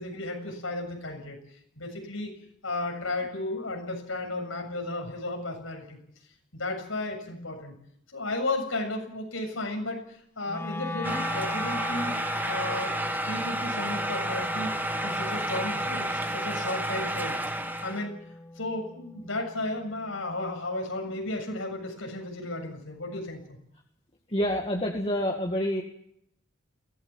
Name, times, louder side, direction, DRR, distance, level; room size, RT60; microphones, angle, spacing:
voice 1, 0.0-1.4 1.8-2.3 2.6-6.0 6.5-7.7 8.1-14.7 15.0-17.4 17.8-18.2 18.6-23.6, left 2 dB, 85° left, 3 dB, 7.4 m, -34 dB
Wind instrument woodwind instrument, 10.5-20.6, left 2 dB, 10° left, 1.1 m, -39 dB
sound 1, 11.0-18.0, right 1 dB, 10° right, 1.7 m, -31 dB
voice 2, 24.3-25.8, equal, 30° left, 1 dB, 2.1 m, -28 dB
23.0 x 18.0 x 7.4 m, 0.71 s
head